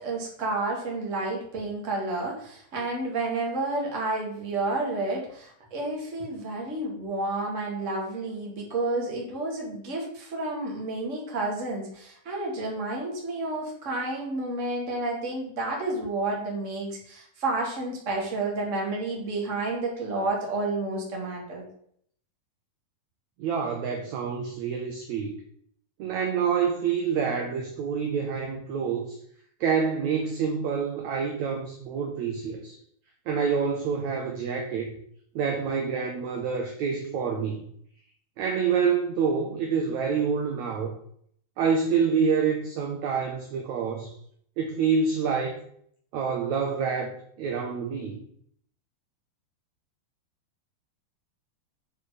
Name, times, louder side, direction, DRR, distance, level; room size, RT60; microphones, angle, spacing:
voice 1, 0.0-21.6, right 2 dB, 25° right, -1 dB, 1.9 m, -30 dB
voice 2, 23.4-25.3 26.0-29.2 29.6-32.8 33.3-35.0 35.4-37.6 38.4-40.9 41.6-44.1 44.6-45.6 46.1-47.1 47.4-48.2, right 6 dB, 70° right, 2 dB, 1.8 m, -27 dB
9.4 x 4.5 x 4.9 m, 0.65 s
omnidirectional pair, 4.3 m